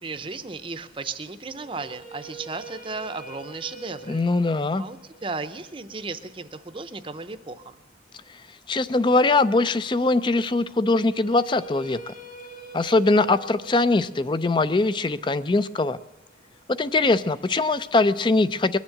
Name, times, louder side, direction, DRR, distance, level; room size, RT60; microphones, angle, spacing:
voice 1, 0.0-4.2 4.8-7.8, right 3 dB, 30° right, 10 dB, 0.6 m, -35 dB
sound 1, 1.5-7.6 10.9-16.9, right 3 dB, 40° left, 1.5 m, -45 dB
voice 2, 4.1-4.8 8.7-12.1 12.7-16.0 16.8-18.8, left 3 dB, 25° left, 15 dB, 0.4 m, -22 dB
21.5 x 7.3 x 7.7 m, 1.1 s
head